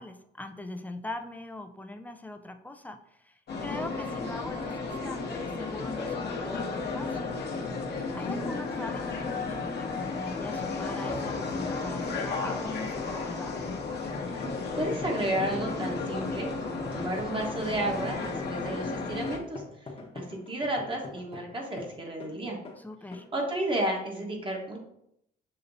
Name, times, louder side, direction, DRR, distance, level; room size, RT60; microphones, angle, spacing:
voice 1, 0.0-3.0 3.2-7.4 8.1-13.5 22.8-23.3, left 2 dB, 10° left, 6 dB, 0.4 m, -41 dB
sound 1, 3.5-19.4, left 4 dB, 55° left, 0.8 m, -33 dB
sound 2, 11.7-22.4 22.6-22.8 23.1-23.3, left 3 dB, 30° left, 0.9 m, -45 dB
voice 2, 14.7-19.6 20.1-22.6 23.3-24.8, right 1 dB, 25° right, 0 dB, 1.2 m, -32 dB
6.5 x 2.8 x 2.7 m, 0.76 s
cardioid pair, 90°, 20 cm